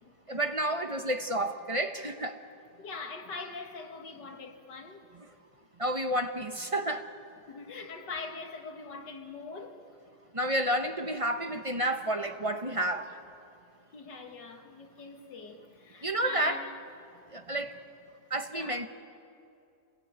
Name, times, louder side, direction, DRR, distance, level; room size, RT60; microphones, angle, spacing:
voice 1, 0.3-2.4 5.8-7.1 10.3-13.2 16.0-16.6 17.3-17.8 18.3-18.9, right 1 dB, 25° right, 0.9 m, -30 dB
voice 2, 2.8-5.1 7.5-9.9 13.9-16.8 18.5-18.8, left 4 dB, 85° left, 2.4 m, -42 dB
28.0 x 20.0 x 8.9 m
omnidirectional pair, 1.8 m